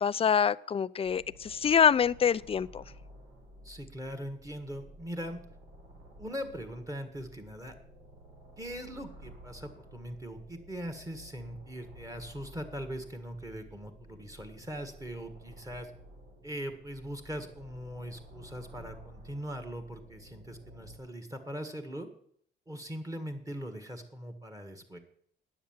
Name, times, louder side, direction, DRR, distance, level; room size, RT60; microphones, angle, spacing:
voice 1, 0.0-2.8, left 7 dB, 30° left, 16 dB, 0.4 m, -25 dB
sound 1, 1.0-21.0, equal, 80° right, 4.3 m, -53 dB
voice 2, 3.6-5.4 6.2-7.7 8.6-15.9 16.4-22.1 22.7-25.0, equal, 15° right, 7 dB, 1.6 m, -41 dB
9.8 x 7.5 x 7.3 m, 0.64 s
cardioid pair, 90°, 20 cm